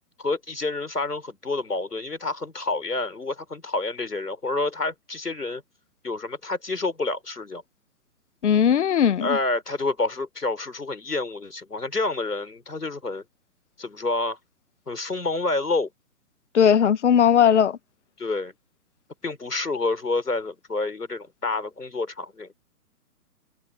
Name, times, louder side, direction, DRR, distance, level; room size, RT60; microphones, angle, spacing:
voice 1, 0.2-5.6 6.0-7.6 9.2-13.2 13.8-14.4 14.9-15.9 18.2-18.5 19.2-22.5, left 3 dB, 80° left, 4.5 m, -28 dB
voice 2, 8.4-9.4 16.5-17.8, left 8 dB, 50° left, 1.6 m, -18 dB
figure-of-eight pair, 130°, 46 cm